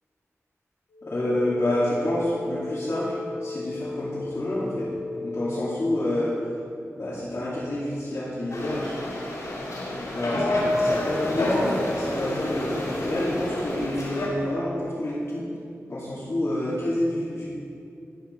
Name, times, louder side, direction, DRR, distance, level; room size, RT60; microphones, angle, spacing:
sound 1, 0.9-5.9, left 3 dB, 90° left, 1.4 m, -35 dB
voice 1, 1.0-3.1 3.4-4.9 5.2-6.5 7.0-9.0 10.1-15.5 15.9-17.5, left 1 dB, 55° left, -11 dB, 2.7 m, -28 dB
sound 2, 8.5-14.3, left 1 dB, 70° left, 2.7 m, -28 dB
11.5 x 9.3 x 4.6 m, 2.5 s
cardioid pair, 50°, 5 cm